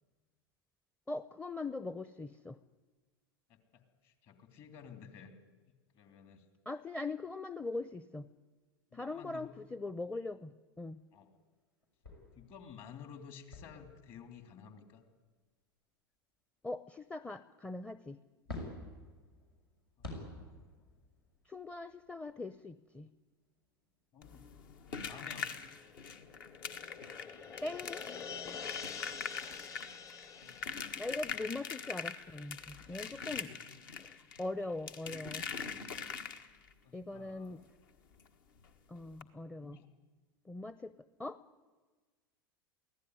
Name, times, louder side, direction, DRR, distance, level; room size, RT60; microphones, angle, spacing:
voice 1, 1.1-2.6 6.7-8.3 8.9-11.0 16.6-18.2 21.5-23.1 27.6-28.0 31.0-33.5 34.0-34.1 34.4-35.4 36.9-37.6 38.9-39.8 40.5-40.9 41.2-41.4, left 2 dB, 10° left, 13 dB, 0.6 m, -41 dB
voice 2, 3.5-5.3 5.6-6.4 8.9-9.5 11.1-11.3 12.3-15.0 20.3-20.9 24.1-24.4 25.0-25.5 29.1-29.8 30.4-30.7 32.7-33.0 36.8-37.8 39.6-39.9, left 7 dB, 45° left, 6 dB, 3.3 m, -53 dB
sound 1, 10.9-11.0 11.8-14.9 18.4-24.5 25.0-25.7 26.0-26.1 26.5-26.6, left 1 dB, 85° left, 6.7 m, -50 dB
sound 2, 24.2-36.7 38.2-38.3 38.6-38.7 39.1-39.2, left 6 dB, 65° left, 1.6 m, -43 dB
sound 3, 25.7-32.7 33.0-33.1, left 6 dB, 30° left, 1.0 m, -47 dB
23.0 x 16.5 x 9.6 m, 1.3 s
figure-of-eight pair, 85°, 12 cm